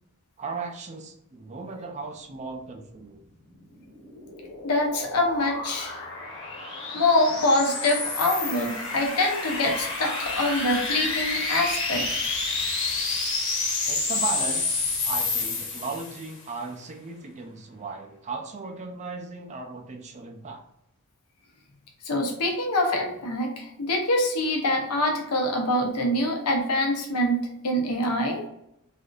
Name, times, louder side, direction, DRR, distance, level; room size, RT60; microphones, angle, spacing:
voice 1, 0.4-3.2 13.9-20.6, right 4 dB, 30° right, 3 dB, 0.4 m, -36 dB
sound 1, 3.7-16.3, left 3 dB, 60° left, 1.2 m, -29 dB
voice 2, 4.6-6.0 6.9-12.2 22.0-28.5, left 1 dB, 85° left, 1 dB, 0.8 m, -25 dB
3.3 x 2.6 x 2.4 m, 0.80 s
head